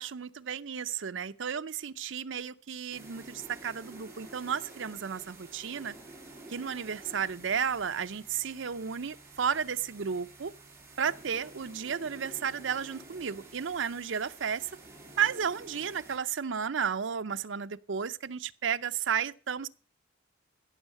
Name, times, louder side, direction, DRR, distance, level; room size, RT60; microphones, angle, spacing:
voice 1, 0.0-5.9 6.5-10.5 11.0-14.7 15.2-19.7, right 7 dB, 65° right, 0.6 m, -33 dB
sound 1, 2.9-16.2, right 2 dB, 15° right, 2.9 m, -50 dB
14.5 x 6.3 x 6.5 m
head